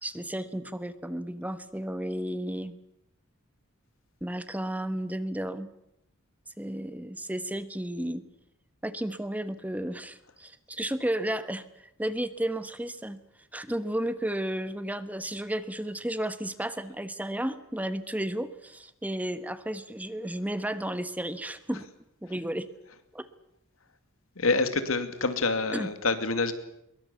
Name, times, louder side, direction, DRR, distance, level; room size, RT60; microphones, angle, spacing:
voice 1, 0.0-2.8 4.2-5.7 6.6-8.2 8.8-13.2 13.5-21.9 22.2-22.7 23.1-23.3 25.7-25.9, right 1 dB, 10° right, 12 dB, 1.1 m, -33 dB
voice 2, 24.4-26.5, left 3 dB, 80° left, 9 dB, 2.5 m, -26 dB
23.0 x 22.5 x 8.4 m, 0.79 s
head